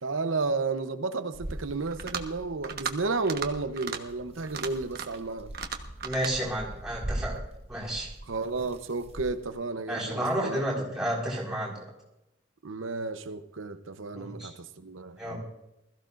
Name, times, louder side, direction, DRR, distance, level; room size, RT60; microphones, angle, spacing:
voice 1, 0.0-5.5 8.3-10.6 12.6-15.4, right 3 dB, 80° right, 0.9 m, -32 dB
sound 1, 1.3-9.6, right 1 dB, 30° right, 0.9 m, -41 dB
sound 2, 1.9-2.3 2.6-2.9 3.2-3.5 3.8-4.0 4.4-5.2 5.5-6.3, right 6 dB, 50° right, 1.2 m, -35 dB
voice 2, 6.0-7.4 7.7-8.1 9.9-11.9 14.1-14.5 15.2-15.4, right 1 dB, 5° right, 4.9 m, -31 dB
20.5 x 14.5 x 2.6 m
head